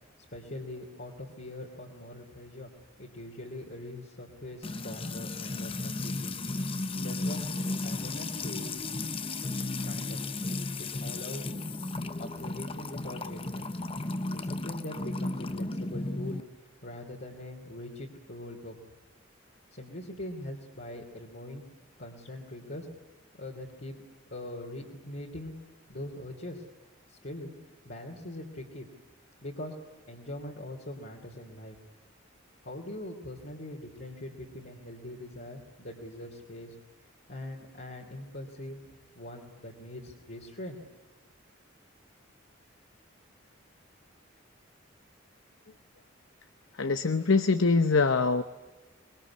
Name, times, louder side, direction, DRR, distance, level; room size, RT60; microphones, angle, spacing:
voice 1, 0.2-2.7 3.0-6.4 7.0-7.5 7.8-8.9 9.8-10.2 10.8-11.5 12.1-13.7 14.3-16.4 16.8-18.7 19.7-21.6 22.0-22.9 23.3-24.0 24.3-25.5 25.9-26.6 27.1-28.9 29.4-29.7 30.1-31.8 32.6-36.7 37.3-38.8 39.1-40.8, left 1 dB, 50° left, -2 dB, 3.0 m, -42 dB
Music / Water tap faucet / Trickle dribble, 4.6-16.4, left 2 dB, 25° left, 0.9 m, -34 dB
voice 2, 46.8-48.4, left 4 dB, 75° left, 10 dB, 0.9 m, -23 dB
25.0 x 22.0 x 9.9 m, 1.1 s
head